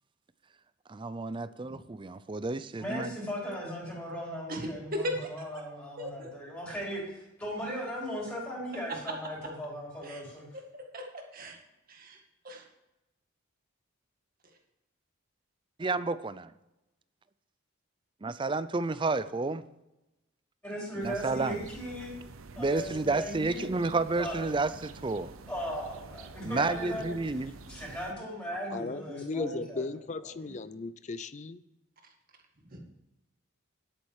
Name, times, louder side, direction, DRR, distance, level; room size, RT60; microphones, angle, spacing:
voice 1, 0.9-3.2 15.8-16.5 18.2-19.6 21.0-21.6 22.6-25.3 26.4-27.5 29.1-29.2, right 3 dB, 25° right, 14 dB, 0.4 m, -31 dB
voice 2, 2.8-10.5 20.6-22.2 22.6-23.7 24.2-24.5 25.5-27.4 27.7-29.8 30.4-30.6, equal, 10° left, -5 dB, 4.1 m, -38 dB
voice 3, 4.5-5.3 6.0-6.3 10.0-10.2 10.9-11.0 11.3-11.6 11.9-12.2 12.4-12.6 32.7-32.8, equal, 45° right, 2 dB, 2.0 m, -36 dB
sound 1, 21.0-28.1, right 3 dB, 80° right, 0.8 m, -48 dB
voice 4, 28.7-31.6, left 3 dB, 35° left, 15 dB, 0.5 m, -37 dB
10.0 x 8.9 x 4.8 m, 0.94 s
head